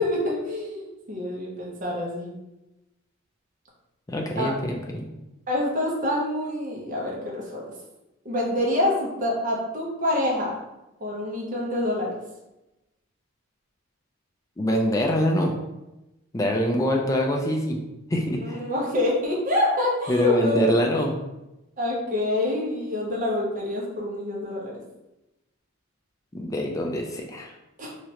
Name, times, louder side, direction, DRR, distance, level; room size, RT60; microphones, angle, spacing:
voice 1, 0.0-2.4 4.4-4.6 5.5-7.6 8.2-10.6 11.0-12.2 18.4-20.7 21.8-24.8 27.8-27.9, left 1 dB, 40° right, -3 dB, 0.7 m, -26 dB
voice 2, 4.1-5.1 14.6-15.5 16.3-17.8 18.1-18.7 20.1-21.2 26.3-27.5, equal, 15° left, 0 dB, 0.3 m, -24 dB
3.1 x 2.4 x 2.8 m, 0.97 s
head